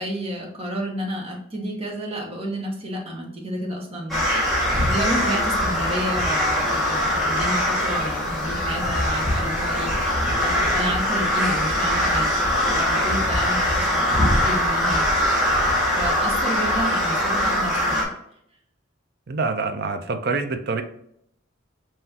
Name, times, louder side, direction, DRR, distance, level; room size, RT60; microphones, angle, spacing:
voice 1, 0.0-15.3 15.9-18.1, equal, 30° right, -1 dB, 1.3 m, -31 dB
sound 1, 4.1-18.0, left 1 dB, ahead, 1.8 m, -22 dB
voice 2, 19.3-20.8, right 4 dB, 55° right, 7 dB, 0.6 m, -26 dB
5.7 x 3.2 x 2.8 m, 0.71 s
head